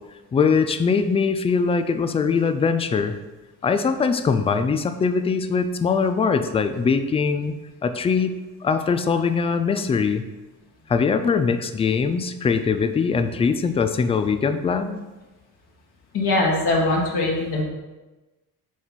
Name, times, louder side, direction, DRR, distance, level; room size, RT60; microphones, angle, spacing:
voice 1, 0.3-3.2 3.6-7.5 7.8-8.4 8.6-10.2 10.9-15.0, left 5 dB, 15° left, 9 dB, 0.3 m, -22 dB
voice 2, 16.1-17.6, left 2 dB, 50° left, -3 dB, 1.6 m, -21 dB
6.2 x 4.5 x 4.0 m, 1.1 s
hypercardioid pair, 50°, 49 cm